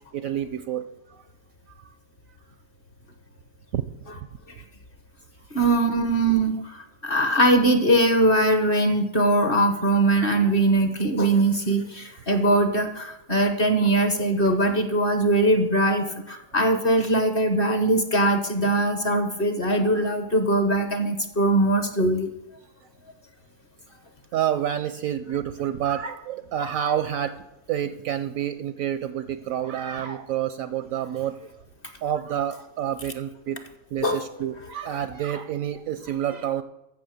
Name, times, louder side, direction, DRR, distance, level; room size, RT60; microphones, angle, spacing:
voice 1, 0.1-0.9 3.7-3.8 24.3-31.4 32.0-33.6 33.9-36.6, right 10 dB, 70° right, 12 dB, 0.8 m, -28 dB
voice 2, 5.5-22.3 34.0-34.2, right 1 dB, 40° left, 7 dB, 1.1 m, -21 dB
14.5 x 6.3 x 6.5 m, 0.87 s
omnidirectional pair, 1.8 m